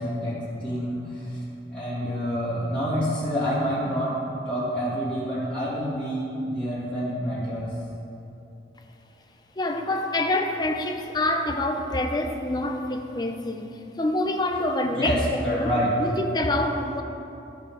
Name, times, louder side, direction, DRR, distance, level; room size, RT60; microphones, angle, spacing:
voice 1, 0.0-1.4 1.7-4.2 4.5-7.7 14.9-15.2 15.4-15.9, equal, 5° left, -11 dB, 2.3 m, -28 dB
voice 2, 9.6-15.7 16.0-17.0, left 1 dB, 25° left, 4 dB, 0.6 m, -26 dB
12.5 x 6.2 x 5.0 m, 2.8 s
head